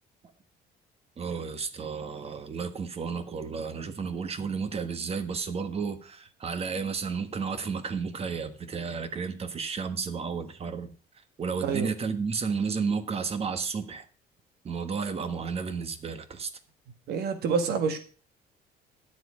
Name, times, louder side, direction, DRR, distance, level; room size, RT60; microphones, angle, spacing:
voice 1, 1.2-10.9 11.4-14.0 14.6-16.5, right 5 dB, 35° right, 1.4 m, -32 dB
voice 2, 17.1-18.0, right 5 dB, 70° right, 1.9 m, -27 dB
12.5 x 7.7 x 5.0 m
cardioid pair, 110°, 17 cm